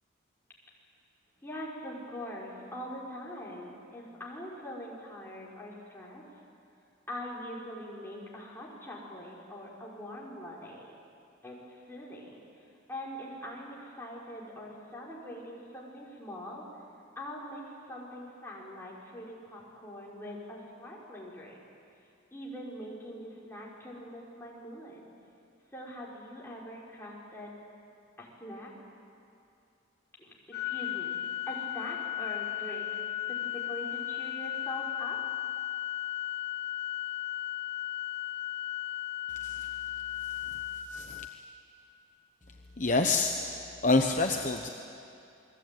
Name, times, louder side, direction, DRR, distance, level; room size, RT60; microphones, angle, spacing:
voice 1, 1.4-6.2 7.1-10.9 11.4-16.6 17.2-21.7 22.3-25.0 25.7-27.6 28.2-28.7 30.2-32.9 33.3-35.2, equal, 10° left, -5 dB, 5.5 m, -43 dB
Organ, 30.5-41.6, left 12 dB, 55° left, 2.3 m, -35 dB
voice 2, 40.9-41.3 42.8-44.7, left 3 dB, 40° left, 3 dB, 1.1 m, -28 dB
29.0 x 21.5 x 9.3 m, 2.6 s
head